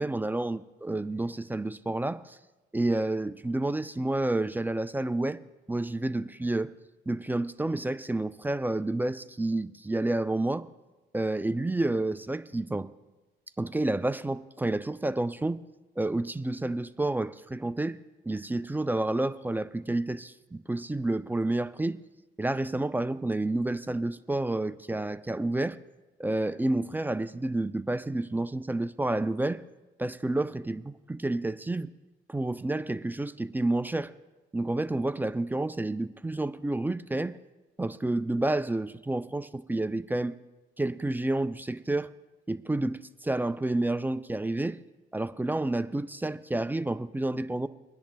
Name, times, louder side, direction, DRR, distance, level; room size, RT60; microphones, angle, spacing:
voice 1, 0.0-2.4 2.7-5.4 5.7-6.7 7.1-10.7 11.1-12.9 13.6-15.6 16.0-18.0 18.2-22.0 22.4-25.8 26.2-29.6 30.0-31.9 32.3-34.1 34.5-37.4 37.8-40.4 40.8-42.1 42.5-44.8 45.1-47.7, right 2 dB, 10° right, 0.3 m, -29 dB
25.5 x 10.5 x 2.2 m
cardioid pair, 90°, 20 cm